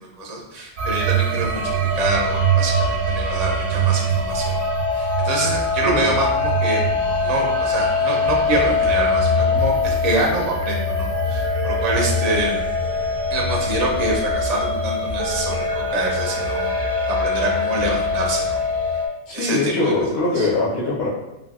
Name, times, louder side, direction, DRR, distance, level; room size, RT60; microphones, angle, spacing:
voice 1, 0.2-4.7 4.9-6.8 7.2-12.6 13.3-16.7 17.2-18.6 19.3-19.9 20.4-20.5, right 2 dB, 55° right, -1 dB, 0.4 m, -26 dB
sound 1, 0.8-19.1, left 1 dB, 80° right, 1.0 m, -22 dB
voice 2, 5.8-6.2 19.3-21.1, left 2 dB, 60° left, -8 dB, 0.9 m, -22 dB
3.3 x 2.3 x 2.3 m, 0.93 s
omnidirectional pair, 1.3 m